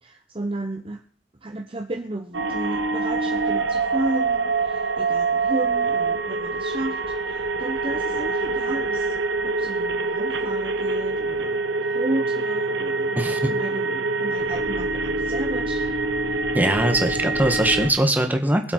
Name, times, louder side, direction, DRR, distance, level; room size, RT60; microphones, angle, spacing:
voice 1, 0.0-1.0 1.4-9.2 9.4-11.6 11.9-16.0 16.2-16.4, right 2 dB, 30° right, 4 dB, 0.9 m, -33 dB
sound 1, 2.3-17.9, right 3 dB, 80° right, 1.4 m, -25 dB
voice 2, 13.2-13.5 16.5-18.7, right 1 dB, 10° right, 4 dB, 1.7 m, -21 dB
22.5 x 7.7 x 4.5 m, 0.44 s
head